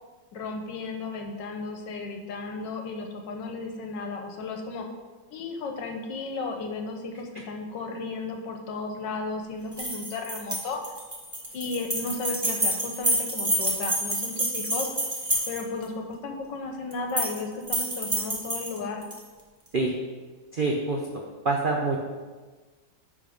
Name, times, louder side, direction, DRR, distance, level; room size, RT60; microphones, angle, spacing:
voice 1, 0.3-4.9 5.3-10.8 11.5-14.9 15.5-19.1, left 3 dB, 70° left, 4 dB, 1.5 m, -34 dB
sound 1, 9.7-15.8 16.9-17.4 17.7-19.2, right 1 dB, 15° right, 1.0 m, -28 dB
voice 2, 20.5-21.0 21.4-22.0, right 3 dB, 70° right, 0 dB, 0.5 m, -25 dB
10.5 x 3.7 x 5.2 m, 1.4 s
omnidirectional pair, 2.0 m